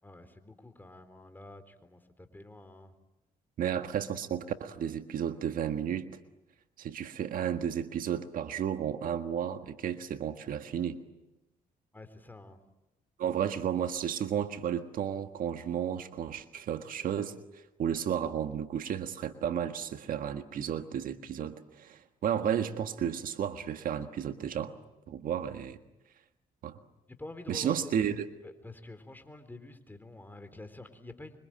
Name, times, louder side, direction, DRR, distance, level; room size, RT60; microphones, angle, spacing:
voice 1, 0.0-2.9 3.8-3.9 11.9-12.6 27.1-28.1 28.4-31.4, left 2 dB, 10° left, 9 dB, 3.9 m, -48 dB
voice 2, 3.6-6.1 6.8-11.0 13.2-24.7 25.1-25.8 26.6-26.8 27.5-28.2, right 9 dB, 70° right, 8 dB, 1.5 m, -33 dB
26.0 x 24.0 x 9.0 m, 0.97 s
supercardioid pair, 70°, 15 cm